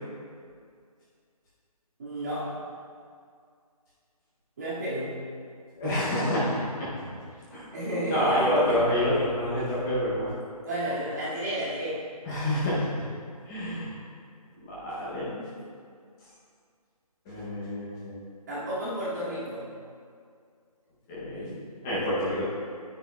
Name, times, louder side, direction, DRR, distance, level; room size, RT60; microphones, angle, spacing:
voice 1, 2.0-2.6 4.6-5.2 7.0-7.1 7.7-8.8 10.6-12.0 18.5-19.7, equal, 30° right, -9 dB, 2.0 m, -32 dB
voice 2, 5.7-6.9 7.5-7.7 8.1-10.3 12.2-12.9 13.5-13.9 14.7-15.4 17.3-18.3 21.1-21.6 21.8-22.4, left 1 dB, 5° left, -10 dB, 0.6 m, -27 dB
9.4 x 9.3 x 2.2 m, 2.2 s
hypercardioid pair, 170°, 20 cm